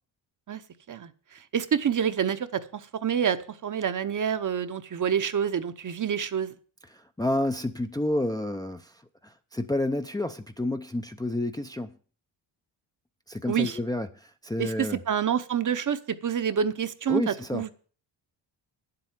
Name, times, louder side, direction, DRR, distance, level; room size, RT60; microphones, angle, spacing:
voice 1, 0.9-6.5 13.5-13.8 14.6-17.7, right 8 dB, 40° right, 0.9 m, -28 dB
voice 2, 6.9-8.9 9.2-11.9 13.3-15.0 17.1-17.6, left 1 dB, 10° left, 0.5 m, -30 dB
10.0 x 7.7 x 7.3 m
cardioid pair, 115°, 46 cm